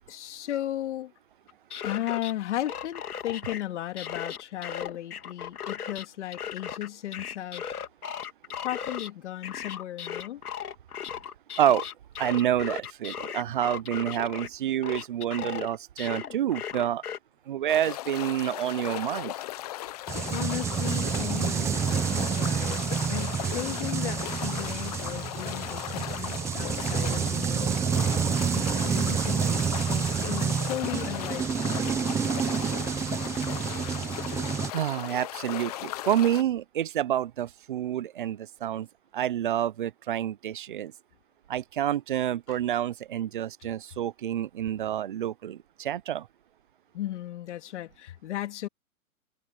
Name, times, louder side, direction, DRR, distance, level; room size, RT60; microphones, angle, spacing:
voice 1, 0.1-1.1 1.8-7.6 8.6-10.4 20.3-27.7 28.5-32.3 46.9-48.7, left 13 dB, 50° left, 3.2 m, -35 dB
sound 1, 1.5-2.3 2.6-3.6 4.0-6.0 6.3-9.1 9.4-14.5 14.8-17.2, left 8 dB, 80° left, 3.3 m, -36 dB
voice 2, 12.2-17.0 17.5-19.3 34.7-38.9 39.1-40.9 41.5-46.3, right 11 dB, 35° right, 0.5 m, -28 dB
sound 2, 17.7-36.4, left 15 dB, 25° left, 0.8 m, -37 dB
sound 3, 20.1-34.7, right 7 dB, 5° right, 0.8 m, -28 dB
hypercardioid pair, 160°, 44 cm